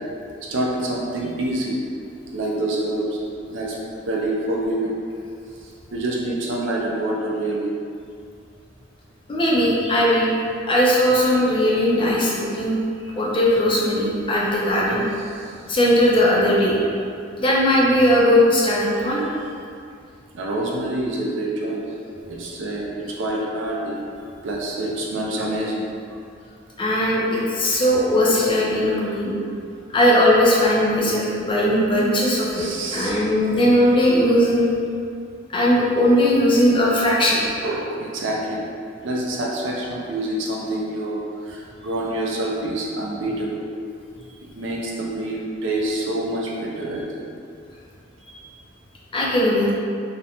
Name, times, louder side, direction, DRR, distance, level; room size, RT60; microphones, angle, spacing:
voice 1, 0.5-1.8 2.3-3.2 3.5-3.8 4.1-4.9 5.9-7.7 15.2-15.6 20.3-21.9 22.3-24.0 24.4-25.9 32.5-33.2 37.6-38.6 39.0-43.7 44.6-47.2, right 1 dB, 70° right, -3 dB, 0.4 m, -26 dB
voice 2, 9.3-10.3 10.7-12.7 13.0-15.0 15.7-16.8 17.4-19.2 26.8-29.4 29.9-32.6 32.9-34.7 35.5-37.5 49.1-49.7, left 1 dB, 25° left, -5 dB, 0.4 m, -18 dB
2.4 x 2.1 x 2.8 m, 2.3 s
head